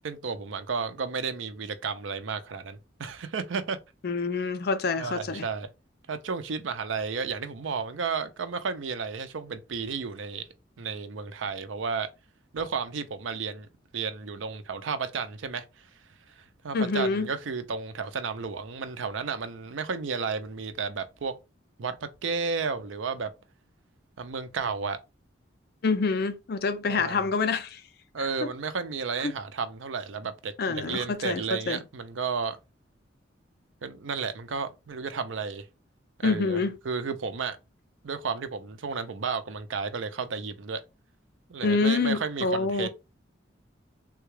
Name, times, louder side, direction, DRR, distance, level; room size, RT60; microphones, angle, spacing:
voice 1, 0.0-3.8 5.0-5.7 6.1-10.5 10.8-12.1 12.5-13.7 13.9-15.8 16.3-21.3 21.8-23.3 24.2-25.0 26.9-27.2 28.1-32.6 33.8-35.7 36.2-37.6 38.0-40.8 41.5-42.9, right 5 dB, 90° right, 0.5 m, -32 dB
voice 2, 4.0-5.4 16.7-17.3 25.8-27.8 28.4-28.5 29.2-29.3 30.6-31.8 36.2-36.8 41.6-42.9, left 4 dB, 55° left, 0.4 m, -27 dB
3.7 x 2.3 x 3.1 m
head